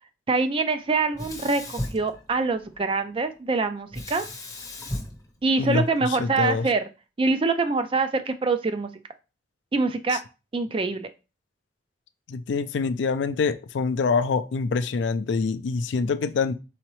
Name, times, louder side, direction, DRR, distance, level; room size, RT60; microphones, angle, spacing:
voice 1, 0.3-4.3 5.4-6.8 7.2-8.9 9.7-10.2 10.5-11.1, right 3 dB, 30° right, 0.3 m, -25 dB
Sink (filling or washing), 1.1-2.8 3.9-6.2, left 1 dB, 15° left, 0.7 m, -36 dB
voice 2, 5.6-6.7 10.1-10.2 12.3-16.5, left 4 dB, 65° left, 0.4 m, -25 dB
4.1 x 3.7 x 3.0 m
head